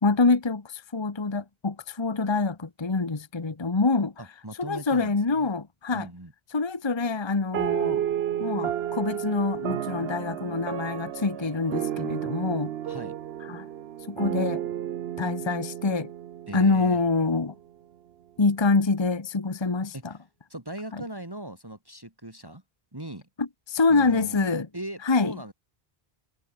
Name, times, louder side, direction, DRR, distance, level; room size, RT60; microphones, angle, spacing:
voice 1, 0.0-4.1 4.6-6.1 6.5-8.0 8.4-12.7 13.5-13.7 14.1-14.6 15.2-16.1 16.5-17.5 18.4-20.1 20.9-21.0 23.4-24.7 25.0-25.4, left 3 dB, 25° left, 1.1 m, -25 dB
voice 2, 4.2-5.5 5.9-6.3 12.8-13.1 16.5-17.0 19.9-20.2 20.5-22.6 22.9-23.3 23.9-25.5, right 1 dB, 20° right, 2.5 m, -39 dB
sound 1, 7.5-17.3, right 10 dB, 80° right, 0.9 m, -32 dB
omnidirectional pair, 1.0 m